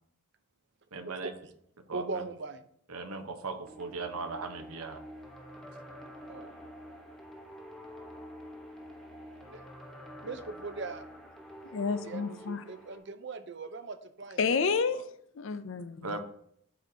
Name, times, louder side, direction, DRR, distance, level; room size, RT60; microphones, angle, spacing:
voice 1, 0.9-1.3 1.9-2.0 2.9-5.0 16.0-16.2, right 3 dB, 85° right, 1.0 m, -38 dB
voice 2, 1.9-2.7 6.3-6.5 9.4-9.7 10.2-11.1 12.0-15.0, right 3 dB, 55° right, 0.6 m, -40 dB
sound 1, 3.7-13.0, equal, ahead, 1.0 m, -48 dB
voice 3, 11.6-12.6 14.4-15.0 15.4-16.2, left 5 dB, 60° left, 0.5 m, -30 dB
12.5 x 4.3 x 2.8 m
head